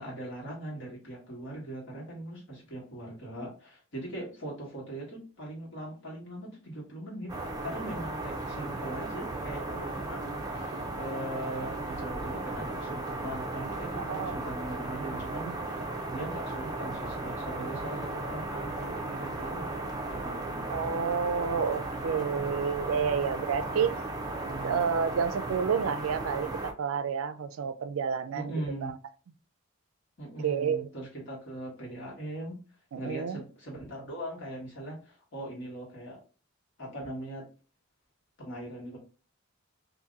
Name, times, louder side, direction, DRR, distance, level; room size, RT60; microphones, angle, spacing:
voice 1, 0.0-7.3 7.6-20.6 24.1-24.8 28.3-28.9 30.2-32.6 33.0-36.2 36.8-37.5 38.4-39.0, right 1 dB, 60° left, 1.6 m, -40 dB
sound 1, 7.3-26.7, right 2 dB, 20° right, 0.4 m, -36 dB
voice 2, 14.0-14.4 15.4-15.5 20.7-24.0 24.6-28.5 28.8-28.9 30.4-30.9 32.9-33.4, right 6 dB, 80° right, 0.4 m, -30 dB
2.8 x 2.6 x 3.7 m
head